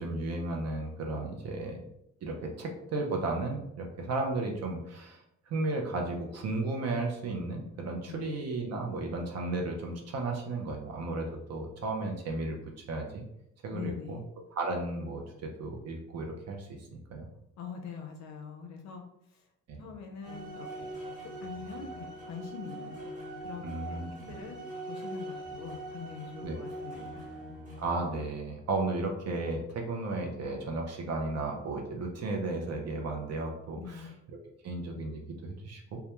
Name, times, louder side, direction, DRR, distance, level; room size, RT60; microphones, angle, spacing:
voice 1, 0.0-1.8 2.2-5.2 5.5-12.6 12.9-13.2 13.6-14.2 14.6-17.3 19.7-19.8 23.6-24.4 26.4-26.6 27.8-34.4 34.6-36.0, right 2 dB, 55° right, 1 dB, 0.6 m, -34 dB
voice 2, 13.7-14.2 17.6-19.0 19.3-19.4 19.8-20.9 21.4-23.0 23.4-24.0 24.3-24.6 24.9-27.2 33.7-34.1, left 6 dB, 65° left, 3 dB, 0.4 m, -43 dB
sound 1, 20.2-28.1, right 1 dB, 25° right, 1.0 m, -42 dB
2.2 x 2.1 x 2.9 m, 0.80 s
cardioid pair, 90°, 30 cm